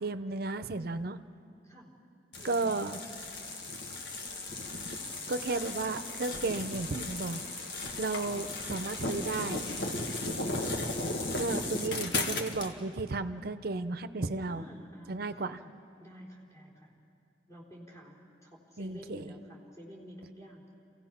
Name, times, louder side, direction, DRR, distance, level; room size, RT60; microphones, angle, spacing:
voice 1, 0.0-1.2 2.4-3.0 5.3-7.4 8.0-9.7 11.4-14.6 15.1-15.6 18.8-19.3, right 3 dB, 60° right, 11 dB, 0.7 m, -34 dB
voice 2, 1.6-2.0 2.4-2.9 10.1-11.3 14.5-15.7 16.0-16.9 17.5-18.2 18.4-20.6, equal, 15° left, -4 dB, 3.9 m, -51 dB
sound 1, 2.3-12.7, left 2 dB, 75° left, 1.5 m, -36 dB
28.5 x 16.5 x 5.9 m, 2.4 s
head